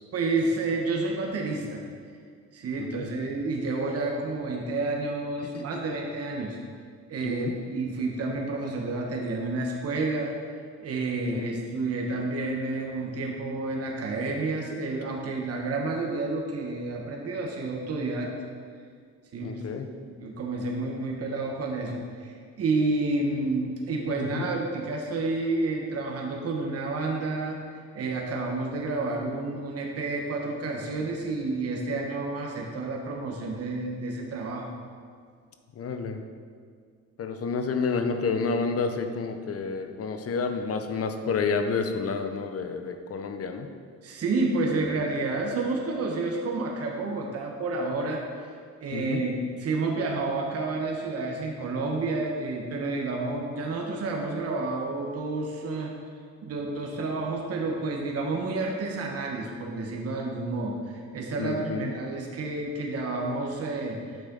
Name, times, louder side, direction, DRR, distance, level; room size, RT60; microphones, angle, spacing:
voice 1, 0.1-1.8 2.5-6.6 7.1-10.3 10.8-18.3 19.3-19.6 20.0-34.7 44.0-48.2 48.8-55.9 56.4-64.0, right 3 dB, 55° right, 0 dB, 1.1 m, -30 dB
voice 2, 19.4-19.9 24.2-24.5 35.8-36.2 37.2-43.7 48.9-49.2 61.4-61.9, left 4 dB, 50° left, 6 dB, 0.8 m, -29 dB
8.6 x 6.3 x 3.9 m, 2.1 s
cardioid pair, 90°, 30 cm